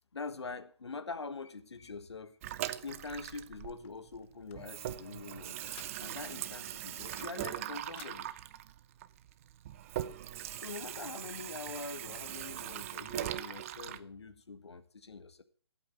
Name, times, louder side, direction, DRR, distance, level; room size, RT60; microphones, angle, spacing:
voice 1, 0.1-2.4 2.8-5.6 6.0-8.3 10.6-15.4, left 4 dB, 70° left, 12 dB, 1.7 m, -44 dB
Water tap faucet / Sink (filling or washing), 2.4-4.2 4.5-14.0, right 12 dB, 30° right, 0.7 m, -41 dB
sound 1, 3.8-6.3 6.7-7.5 7.7-8.2, left 13 dB, 25° left, 0.7 m, -56 dB
14.5 x 8.4 x 7.6 m, 0.43 s
figure-of-eight pair, 140°, 14 cm